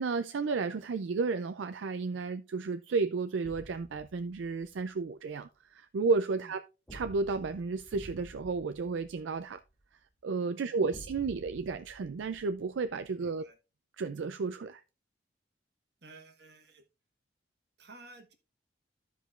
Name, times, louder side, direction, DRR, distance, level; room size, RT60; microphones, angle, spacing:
voice 1, 0.0-6.6 6.9-9.6 10.2-13.4 14.0-14.8, right 4 dB, 80° right, 0.4 m, -32 dB
sound 1, 3.4-4.8 6.9-9.8 10.9-13.1, right 1 dB, 5° left, 1.8 m, -51 dB
voice 2, 13.2-13.6 16.0-16.8 17.8-18.3, right 2 dB, 60° right, 1.4 m, -53 dB
14.0 x 5.1 x 2.4 m
head